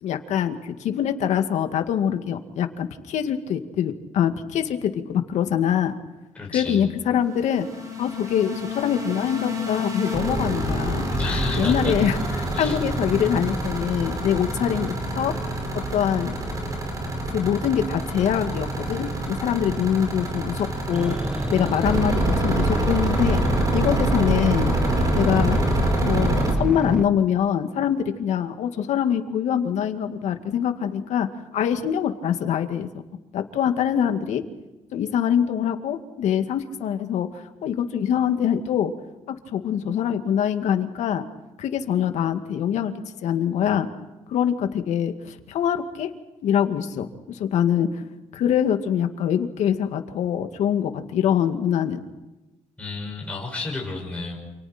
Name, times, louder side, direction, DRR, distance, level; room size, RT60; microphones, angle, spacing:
voice 1, 0.0-5.9 6.5-7.7 8.0-11.1 11.6-15.4 15.9-16.4 17.3-21.2 21.5-23.4 23.7-24.8 25.2-25.6 26.0-32.9 33.3-34.4 34.9-38.9 39.5-41.2 41.6-42.9 43.2-43.9 44.3-46.1 46.4-48.0 48.3-52.0, left 9 dB, 80° left, 7 dB, 2.2 m, -24 dB
voice 2, 6.3-6.9 11.2-12.0 12.5-12.8 52.8-54.4, left 3 dB, 10° left, -2 dB, 6.1 m, -31 dB
sound 1, 7.2-26.5, right 1 dB, 30° right, 5.5 m, -26 dB
sound 2, 20.9-27.0, right 1 dB, 10° right, 1.3 m, -29 dB
29.0 x 28.5 x 4.5 m, 1.1 s
cardioid pair, 165°, 12 cm